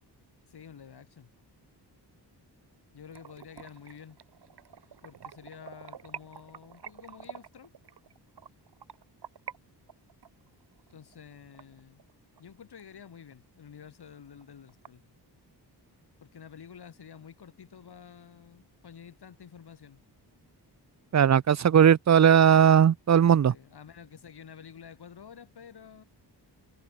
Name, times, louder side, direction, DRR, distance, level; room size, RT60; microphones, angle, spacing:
voice 1, 0.4-1.3 2.9-4.2 5.0-7.7 10.9-12.0 12.4-15.0 16.2-20.0 23.5-26.0, left 7 dB, 65° left, 7.9 m, -49 dB
sound 1, 3.1-9.6 9.9-12.4 12.8-12.9 13.3-13.4 13.8-13.9 14.1-14.9, right 8 dB, 70° right, 6.6 m, -47 dB
voice 2, 21.1-23.5, right 8 dB, 40° right, 0.6 m, -19 dB
wide cardioid pair, 120°, 42 cm